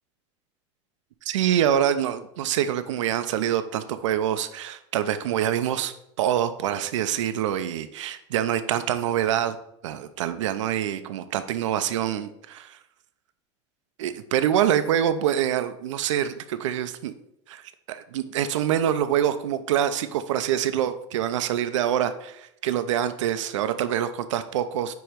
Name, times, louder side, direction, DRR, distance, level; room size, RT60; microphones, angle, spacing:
voice 1, 1.2-9.6 9.8-12.8 14.0-17.1 17.5-24.9, right 10 dB, 90° right, 11 dB, 0.7 m, -25 dB
9.2 x 3.1 x 5.1 m, 0.77 s
supercardioid pair, 140°, 15 cm